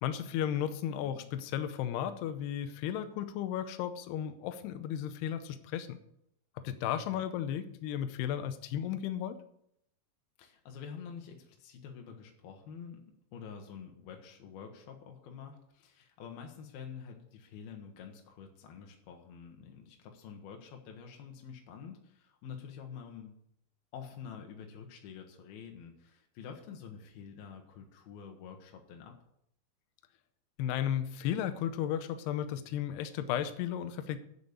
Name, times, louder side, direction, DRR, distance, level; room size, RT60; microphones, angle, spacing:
voice 1, 0.0-6.0 6.6-9.4 30.6-34.2, left 10 dB, 85° left, 10 dB, 2.3 m, -34 dB
voice 2, 10.4-13.0 13.3-23.3 23.9-29.2, left 7 dB, 70° left, 3 dB, 2.5 m, -48 dB
9.1 x 7.0 x 8.1 m, 0.73 s
omnidirectional pair, 5.6 m